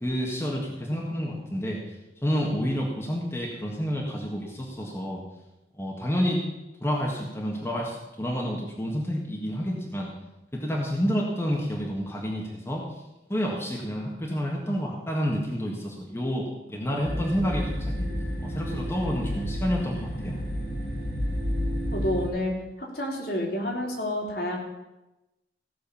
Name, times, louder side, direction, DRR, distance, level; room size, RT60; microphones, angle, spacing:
voice 1, 0.0-2.0 2.2-5.2 5.7-6.4 6.8-10.1 10.5-13.0 13.3-18.1 18.4-20.4, equal, 15° left, -2 dB, 1.7 m, -29 dB
sound 1, 17.0-22.3, equal, 90° left, 5.0 m, -30 dB
voice 2, 21.9-22.5 22.8-24.6, left 1 dB, 60° left, -1 dB, 3.1 m, -29 dB
16.0 x 6.4 x 7.1 m, 1.0 s
head